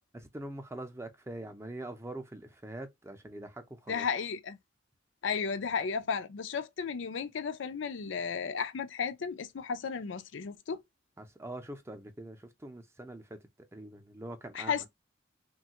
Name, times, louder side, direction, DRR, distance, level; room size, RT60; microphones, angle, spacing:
voice 1, 0.3-4.0 11.2-13.4 13.7-14.9, right 1 dB, 15° right, 0.5 m, -43 dB
voice 2, 3.9-4.6 5.2-10.8 14.5-14.9, left 6 dB, 75° left, 0.5 m, -34 dB
3.1 x 2.3 x 2.8 m
head